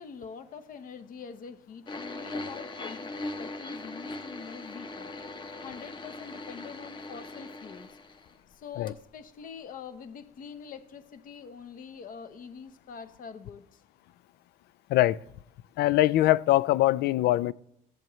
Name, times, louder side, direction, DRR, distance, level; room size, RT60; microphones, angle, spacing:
voice 1, 0.0-5.2 5.6-8.0 8.5-13.8, left 6 dB, 55° left, 1.0 m, -44 dB
sound 1, 1.9-8.6 8.9-9.0 9.8-9.9, left 2 dB, 25° left, 1.0 m, -40 dB
voice 2, 15.8-17.5, left 15 dB, 75° left, 0.4 m, -22 dB
15.0 x 10.5 x 3.1 m
cardioid pair, 110°, 17 cm